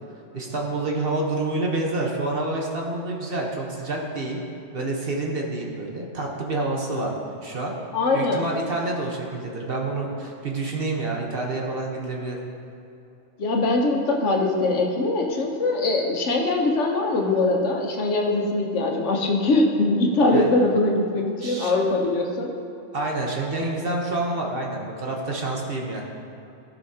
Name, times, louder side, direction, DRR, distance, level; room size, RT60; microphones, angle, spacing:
voice 1, 0.3-4.4 4.7-7.1 7.4-7.7 8.1-12.4 20.3-20.5 21.4-21.7 22.9-26.0, right 2 dB, 50° right, -1 dB, 1.2 m, -28 dB
voice 2, 7.9-8.5 13.4-22.5, left 2 dB, 70° left, 1 dB, 1.3 m, -22 dB
15.5 x 5.7 x 2.8 m, 2.9 s
omnidirectional pair, 1.3 m